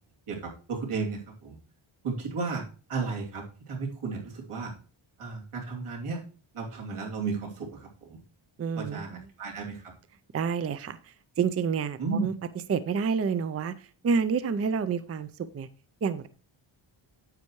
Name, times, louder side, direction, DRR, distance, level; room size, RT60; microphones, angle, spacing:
voice 1, 0.3-1.6 2.0-4.7 5.2-6.2 6.5-8.2 8.8-9.9 12.0-12.3, right 4 dB, 90° right, -1 dB, 2.9 m, -34 dB
voice 2, 8.6-9.3 10.3-12.3 12.7-15.7 16.0-16.3, right 6 dB, 30° right, 13 dB, 0.4 m, -29 dB
9.8 x 8.2 x 3.1 m, 0.37 s
wide cardioid pair, 165°, 50 cm